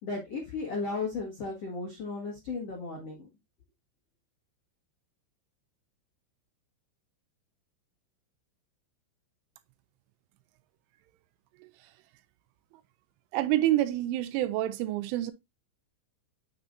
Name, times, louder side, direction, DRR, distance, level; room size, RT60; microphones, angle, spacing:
voice 1, 0.0-3.3, left 3 dB, 75° left, 1.4 m, -35 dB
voice 2, 13.3-15.3, right 14 dB, 85° right, 3.0 m, -27 dB
7.2 x 6.8 x 2.6 m
omnidirectional pair, 5.8 m